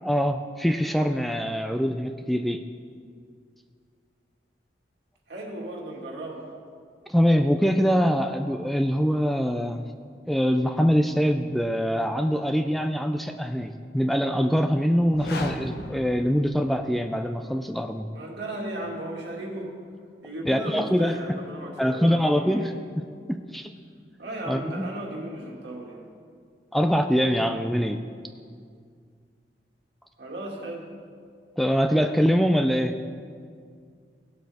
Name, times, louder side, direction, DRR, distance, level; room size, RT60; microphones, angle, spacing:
voice 1, 0.0-2.6 7.1-9.9 10.3-18.1 20.5-21.2 21.8-23.7 24.5-24.9 26.7-28.0 31.6-33.0, equal, ahead, 6 dB, 0.3 m, -24 dB
voice 2, 5.3-6.5 18.1-19.7 20.2-22.7 24.2-26.0 30.2-30.9, right 1 dB, 70° right, -2 dB, 2.2 m, -36 dB
sound 1, 15.0-17.1, left 2 dB, 60° left, 0.8 m, -37 dB
17.0 x 7.7 x 3.5 m, 2.2 s
head